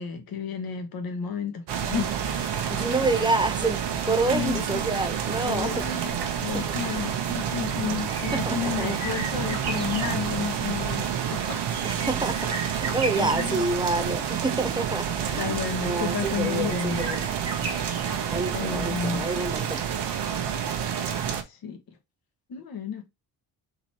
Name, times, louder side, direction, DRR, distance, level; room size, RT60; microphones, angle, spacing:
voice 1, 0.0-2.8 4.3-4.8 5.5-11.6 12.0-12.1 13.2-13.7 14.0-14.1 15.3-17.2 18.5-19.3 21.5-21.8 22.5-23.1, left 7 dB, 55° left, 1.3 m, -32 dB
sound 1, 1.7-21.4, right 8 dB, 70° right, 0.9 m, -29 dB
voice 2, 2.7-5.8 6.5-6.8 7.9-8.0 8.3-9.0 11.8-15.6 15.8-17.3 18.3-19.8, right 3 dB, 10° right, 0.4 m, -28 dB
sound 2, 4.7-20.5 20.8-20.9, right 3 dB, 35° right, 1.4 m, -40 dB
4.0 x 3.1 x 4.1 m
cardioid pair, 125°, 43 cm